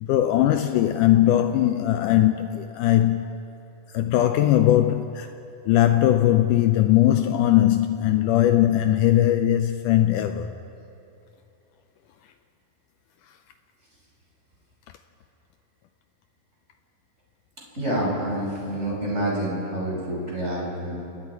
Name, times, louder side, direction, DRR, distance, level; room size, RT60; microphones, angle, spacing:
voice 1, 0.0-3.4 3.9-5.4 5.7-10.6, left 12 dB, 85° left, 1.8 m, -20 dB
voice 2, 17.8-21.0, right 1 dB, 15° right, 5.6 m, -27 dB
29.0 x 19.0 x 4.7 m
omnidirectional pair, 4.3 m